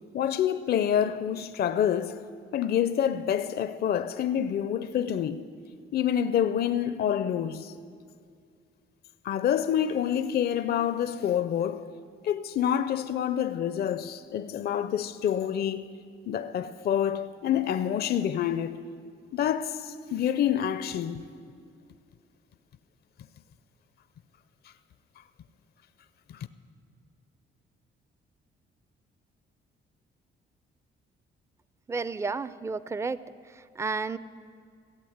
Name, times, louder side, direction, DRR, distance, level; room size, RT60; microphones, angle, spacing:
voice 1, 0.1-2.2 2.5-5.5 5.9-7.7 9.2-11.9 12.2-15.9 16.3-18.8 19.3-21.2 26.3-26.5, left 9 dB, 50° left, 0.5 m, -27 dB
voice 2, 31.9-33.2 33.5-34.2, right 4 dB, 15° right, 0.4 m, -31 dB
16.0 x 8.2 x 7.9 m
cardioid pair, 90°, 20 cm